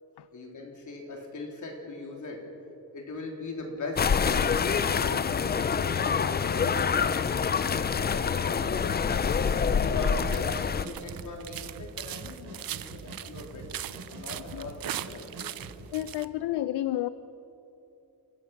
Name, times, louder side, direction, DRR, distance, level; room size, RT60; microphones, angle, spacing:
voice 1, 0.3-2.5 2.9-9.0 9.5-15.5, left 2 dB, 50° left, 0 dB, 3.7 m, -39 dB
sound 1, 4.0-10.8, left 6 dB, 25° left, 0.4 m, -26 dB
sound 2, 8.6-15.9, right 3 dB, 80° right, 4.6 m, -44 dB
sound 3, 10.2-16.3, right 12 dB, 60° right, 0.7 m, -39 dB
voice 2, 15.9-17.1, left 14 dB, 90° left, 14 dB, 0.6 m, -30 dB
29.5 x 15.5 x 5.9 m, 2.9 s
wide cardioid pair, 160°, 39 cm